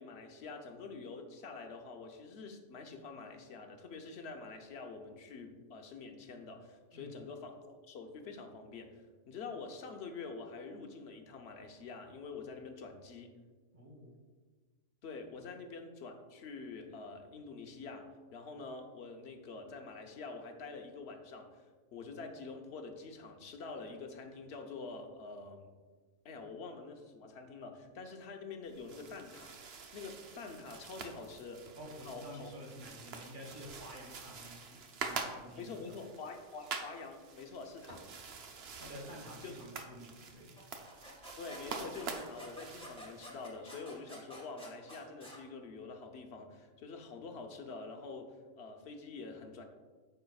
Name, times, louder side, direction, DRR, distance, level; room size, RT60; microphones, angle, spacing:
voice 1, 0.0-13.4 15.0-21.6 21.9-25.7 26.2-31.6 32.0-32.5 35.6-38.0 39.4-39.5 41.4-49.7, left 4 dB, 60° left, 4 dB, 1.0 m, -46 dB
voice 2, 13.7-14.1 31.8-35.8 38.8-40.6, equal, 40° right, 0 dB, 1.6 m, -50 dB
sound 1, 28.7-43.5, right 5 dB, 60° right, 0.9 m, -46 dB
sound 2, 40.6-45.4, equal, 5° left, 1.4 m, -50 dB
9.2 x 6.7 x 2.3 m, 1.4 s
omnidirectional pair, 1.3 m